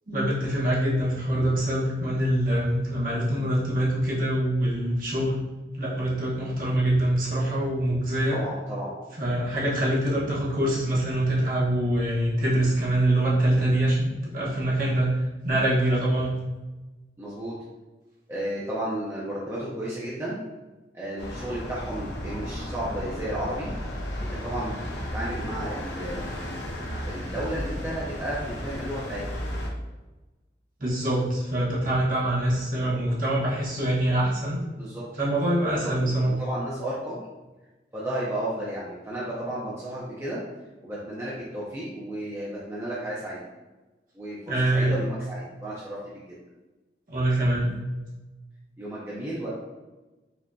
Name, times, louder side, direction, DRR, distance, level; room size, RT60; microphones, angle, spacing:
voice 1, 0.1-5.4 5.8-8.4 9.2-16.4 30.8-34.6 35.2-36.4 44.5-45.0 47.1-47.7, right 1 dB, 50° right, -7 dB, 1.1 m, -24 dB
voice 2, 8.3-8.9 17.2-17.6 18.3-20.4 20.9-23.7 24.2-24.8 25.1-26.3 26.8-29.2 34.7-35.0 35.6-37.2 37.9-40.4 40.8-43.4 44.1-44.4 44.7-46.3 48.8-49.5, right 1 dB, 15° right, -7 dB, 0.6 m, -33 dB
sound 1, 21.2-29.7, equal, 75° left, 0.7 m, -34 dB
5.0 x 2.7 x 2.3 m, 1.1 s
head